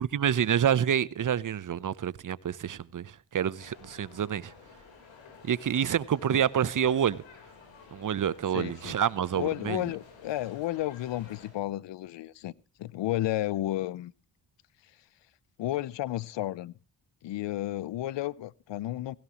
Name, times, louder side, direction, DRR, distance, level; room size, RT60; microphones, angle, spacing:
voice 1, 0.0-4.5 5.4-7.2 7.9-9.8, right 9 dB, 45° right, 0.8 m, -28 dB
sound 1, 3.6-11.5, left 5 dB, 90° left, 4.0 m, -52 dB
voice 2, 8.5-9.0 9.3-12.5 12.8-14.1 15.6-16.7 17.2-19.2, left 14 dB, 70° left, 0.7 m, -32 dB
16.5 x 16.5 x 3.0 m
cardioid pair, 65°, 44 cm